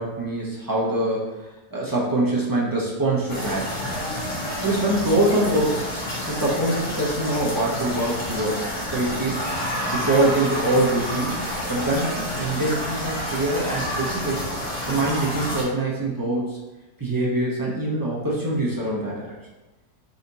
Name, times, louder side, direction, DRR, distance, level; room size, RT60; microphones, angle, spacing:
voice 1, 0.0-1.3 1.7-3.8 4.6-5.8 6.2-8.7 8.9-9.4 9.9-11.4 11.7-14.4 14.9-16.6 17.0-19.3, right 2 dB, 25° right, -6 dB, 0.4 m, -24 dB
sound 1, 3.3-15.6, left 1 dB, 75° left, 1.7 m, -29 dB
4.1 x 2.8 x 4.0 m, 1.1 s
omnidirectional pair, 1.7 m